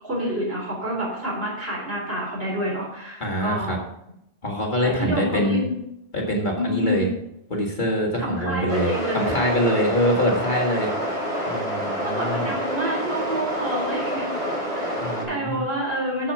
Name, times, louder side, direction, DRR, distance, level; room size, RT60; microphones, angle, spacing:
voice 1, 0.0-3.8 4.8-5.8 6.6-7.2 8.2-9.3 12.0-14.3 14.8-14.9 15.3-16.3, right 1 dB, 60° right, -4 dB, 4.5 m, -28 dB
voice 2, 3.2-3.8 4.4-5.6 6.1-7.1 7.5-11.1 11.5-12.5 15.0-15.6, equal, 45° left, -1 dB, 2.0 m, -24 dB
sound 1, 8.7-15.2, equal, 80° right, 5.0 m, -28 dB
8.5 x 7.4 x 5.9 m, 0.79 s
omnidirectional pair, 1.1 m